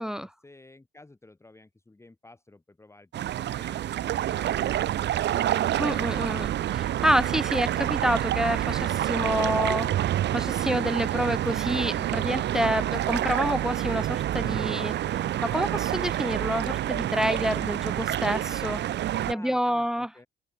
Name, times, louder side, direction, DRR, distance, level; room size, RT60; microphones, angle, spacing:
voice 1, 0.0-5.8 12.8-13.2 19.2-20.3, left 2 dB, 15° left, 1.4 m, -52 dB
sound 1, 3.1-19.3, right 12 dB, 60° right, 0.6 m, -28 dB
voice 2, 5.8-18.8 19.3-20.1, equal, 5° right, 0.7 m, -28 dB
cardioid pair, 90°, 20 cm